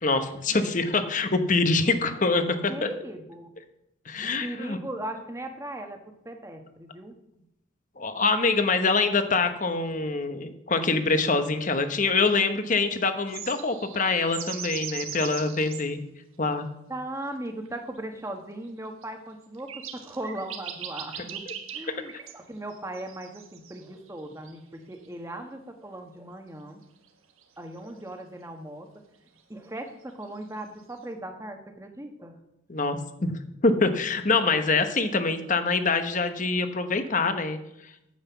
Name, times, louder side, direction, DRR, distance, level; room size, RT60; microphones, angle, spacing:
voice 1, 0.0-2.9 4.1-4.8 8.0-16.0 16.4-16.7 32.7-33.3 33.6-37.6, left 3 dB, 35° left, 9 dB, 1.0 m, -25 dB
voice 2, 2.7-3.5 4.2-6.0 6.2-7.1 16.9-21.4 21.7-26.8 27.6-28.9 29.5-32.4, right 1 dB, 15° right, 4 dB, 1.2 m, -38 dB
sound 1, 13.3-15.8 17.7-17.8 19.0-19.1 19.5-22.4 22.7-24.1 24.5-24.6 27.1-27.2 27.4-27.5 29.8-30.2, right 8 dB, 80° right, 1.4 m, -39 dB
9.5 x 8.0 x 6.9 m, 0.84 s
head